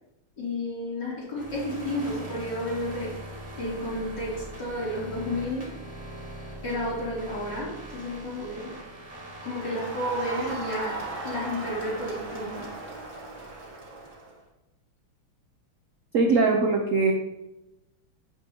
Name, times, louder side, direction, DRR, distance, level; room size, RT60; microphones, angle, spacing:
voice 1, 0.4-3.2 3.6-5.7 6.6-8.8 9.4-12.7, left 1 dB, 50° left, -7 dB, 3.7 m, -32 dB
sound 1, 1.3-14.1, right 1 dB, 25° right, 2.2 m, -42 dB
Crowd, 9.5-14.3, right 2 dB, 45° right, 2.1 m, -37 dB
voice 2, 16.1-17.1, right 3 dB, 65° right, 2 dB, 0.8 m, -21 dB
8.7 x 8.1 x 2.9 m, 0.97 s
omnidirectional pair, 2.3 m